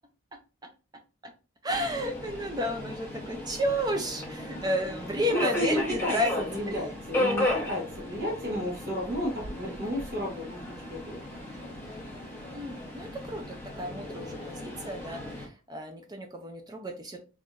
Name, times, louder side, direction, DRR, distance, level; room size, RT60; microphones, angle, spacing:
voice 1, 1.6-6.3 6.7-6.9 7.1-7.3 12.5-17.2, equal, 20° right, 4 dB, 0.5 m, -32 dB
Subway metro underground, 1.7-15.5, left 1 dB, 10° left, 1.1 m, -35 dB
voice 2, 5.3-11.2, left 1 dB, 45° right, -6 dB, 1.3 m, -32 dB
3.7 x 3.0 x 2.5 m, 0.33 s
head